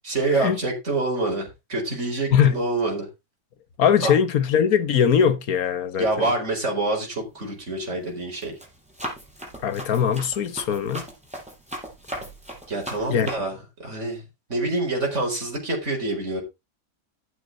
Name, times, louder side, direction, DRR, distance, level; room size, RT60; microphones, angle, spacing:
voice 1, 0.0-3.1 4.0-4.1 6.0-8.5 12.7-14.2 14.5-16.4, right 2 dB, 45° right, 5.0 m, -26 dB
voice 2, 3.8-6.3 9.6-11.0 13.1-13.3, left 8 dB, 60° left, 1.5 m, -21 dB
Run, 7.2-7.6 8.1-13.3, equal, 5° right, 5.2 m, -37 dB
12.5 x 8.4 x 3.8 m
omnidirectional pair, 1.8 m